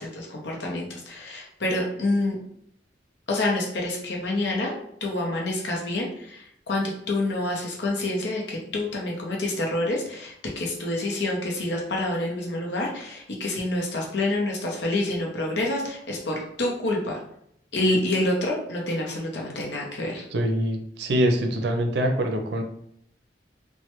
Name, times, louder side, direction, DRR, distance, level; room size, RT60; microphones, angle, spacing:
voice 1, 0.0-2.4 3.3-17.2 17.7-20.2, left 2 dB, 70° left, -1 dB, 0.7 m, -27 dB
voice 2, 20.3-22.6, right 1 dB, 65° right, 5 dB, 0.5 m, -24 dB
3.1 x 2.2 x 2.9 m, 0.69 s
head